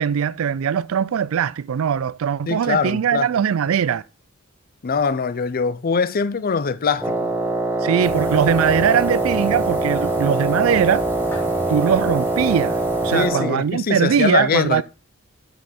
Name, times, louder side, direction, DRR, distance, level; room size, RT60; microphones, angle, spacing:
voice 1, 0.0-4.0 7.8-11.1 11.7-14.8, right 8 dB, 75° right, 0.4 m, -21 dB
voice 2, 2.5-3.3 4.8-7.3 13.1-14.8, left 5 dB, 45° left, 0.5 m, -22 dB
Wind instrument woodwind instrument, 7.0-13.7, right 2 dB, 10° right, 0.6 m, -23 dB
sound 1, 8.0-13.3, equal, 10° left, 1.8 m, -35 dB
8.0 x 5.2 x 4.3 m
head